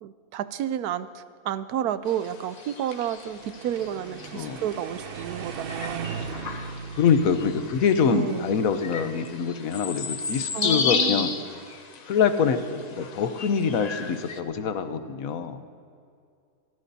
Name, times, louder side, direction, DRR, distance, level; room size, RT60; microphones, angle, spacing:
voice 1, 0.0-6.1 8.1-8.6 10.5-11.3, right 10 dB, 80° right, 13 dB, 1.1 m, -31 dB
sound 1, 2.1-14.4, left 5 dB, 50° left, 0.5 m, -34 dB
sound 2, 3.2-9.3, right 6 dB, 55° right, 0.6 m, -39 dB
voice 2, 7.0-11.3 12.1-15.6, left 6 dB, 65° left, 9 dB, 1.2 m, -25 dB
24.0 x 14.5 x 2.8 m, 2.3 s
omnidirectional pair, 1.6 m